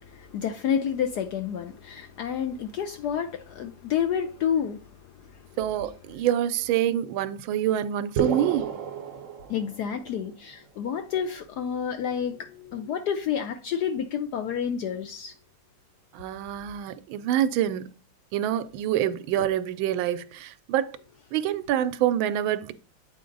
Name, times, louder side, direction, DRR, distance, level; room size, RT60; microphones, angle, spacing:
voice 1, 0.0-4.8 5.2-5.4 9.5-15.3 19.4-19.5, left 8 dB, 70° left, 0.9 m, -29 dB
voice 2, 5.6-8.7 16.1-18.0 18.3-21.0 21.3-22.7, right 11 dB, 80° right, 1.3 m, -26 dB
sound 1, 8.2-10.1, right 7 dB, 60° right, 0.8 m, -30 dB
8.3 x 4.2 x 3.8 m
omnidirectional pair, 2.2 m